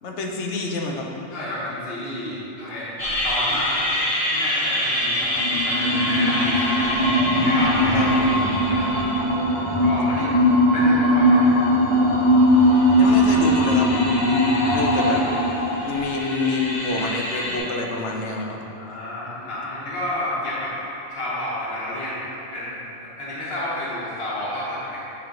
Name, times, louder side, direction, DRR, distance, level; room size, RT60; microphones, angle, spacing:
voice 1, 0.0-1.1 7.9-8.4 13.0-13.9 14.7-15.2 15.9-18.6, left 3 dB, 85° left, 1 dB, 1.0 m, -27 dB
voice 2, 1.3-7.0 7.4-8.1 8.7-8.9 9.8-10.3 10.7-11.5 14.6-14.9 18.8-20.7 21.1-25.0, left 1 dB, 60° left, -7 dB, 1.4 m, -30 dB
sound 1, 3.0-17.6, equal, 25° left, 1.3 m, -20 dB
8.8 x 3.3 x 3.8 m, 3.0 s
omnidirectional pair, 1.1 m